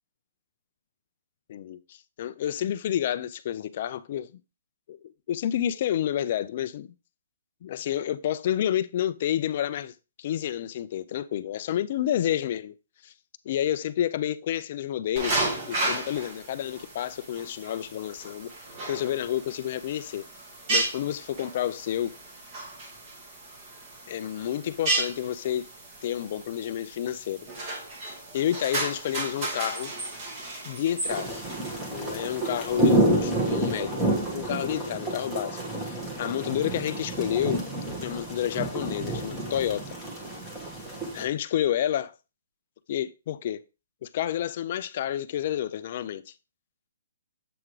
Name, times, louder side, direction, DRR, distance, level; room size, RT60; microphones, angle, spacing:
voice 1, 1.5-4.3 4.9-5.0 5.3-6.9 7.6-9.9 10.2-12.7 13.0-13.1 13.5-18.5 18.9-20.2 20.7-22.2 24.1-25.7 26.0-27.5 28.3-29.9 30.6-31.4 31.9-34.0 34.3-35.6 35.8-37.6 38.0-39.9 41.1-42.1 42.9-43.6 44.0-46.3, left 11 dB, 35° left, 0.4 m, -29 dB
sound 1, 15.2-33.0, right 2 dB, 25° right, 1.8 m, -34 dB
sound 2, 31.1-41.2, right 1 dB, 10° right, 1.5 m, -29 dB
7.8 x 3.7 x 4.7 m
hypercardioid pair, 175°, 0 cm